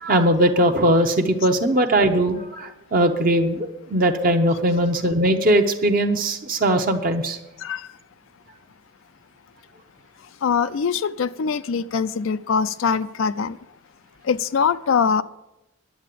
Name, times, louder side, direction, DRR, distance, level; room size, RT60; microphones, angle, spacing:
voice 1, 0.0-7.4, right 1 dB, 45° right, 3 dB, 0.8 m, -20 dB
voice 2, 7.6-7.9 10.4-13.6 14.2-15.2, left 6 dB, 80° left, 13 dB, 0.4 m, -23 dB
10.5 x 7.6 x 7.6 m, 0.93 s
head